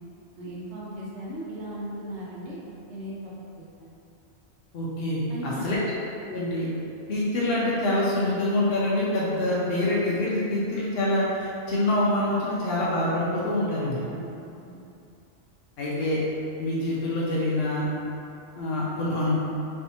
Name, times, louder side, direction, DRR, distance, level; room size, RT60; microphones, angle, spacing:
voice 1, 0.4-2.6 2.9-4.0 5.3-5.7 14.0-14.4 14.6-14.8, right 1 dB, 75° right, -6 dB, 1.0 m, -37 dB
voice 2, 4.7-5.8 6.3-6.7 7.1-14.0 15.8-16.2 16.6-17.9 18.6-19.4, left 1 dB, 65° left, -8 dB, 0.7 m, -26 dB
3.2 x 2.6 x 2.8 m, 2.7 s
omnidirectional pair, 1.2 m